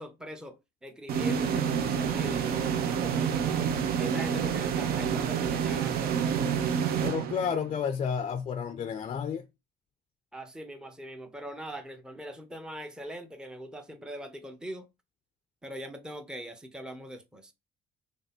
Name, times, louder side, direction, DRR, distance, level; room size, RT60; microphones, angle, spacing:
voice 1, 0.0-6.4 10.3-14.9 15.6-17.5, equal, 5° right, 0.6 m, -42 dB
sound 1, 1.1-7.8, right 7 dB, 65° right, 0.6 m, -28 dB
voice 2, 7.0-9.4, left 7 dB, 35° left, 0.4 m, -31 dB
3.3 x 2.7 x 4.0 m
cardioid pair, 110°, 17 cm